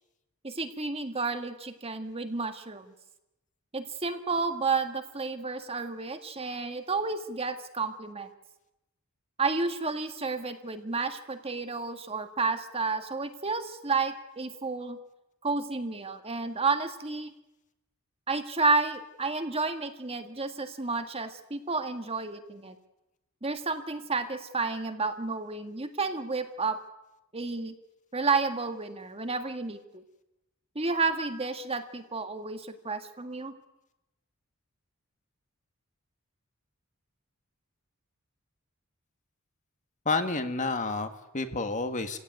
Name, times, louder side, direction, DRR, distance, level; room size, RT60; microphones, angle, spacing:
voice 1, 0.4-2.9 3.7-8.3 9.4-15.0 15.4-17.3 18.3-22.8 23.4-26.8 27.3-27.8 28.1-30.0 30.8-33.5, right 4 dB, 25° right, 7 dB, 1.8 m, -31 dB
voice 2, 40.1-42.2, left 3 dB, 35° left, 8 dB, 1.8 m, -30 dB
28.5 x 16.5 x 9.4 m, 0.94 s
head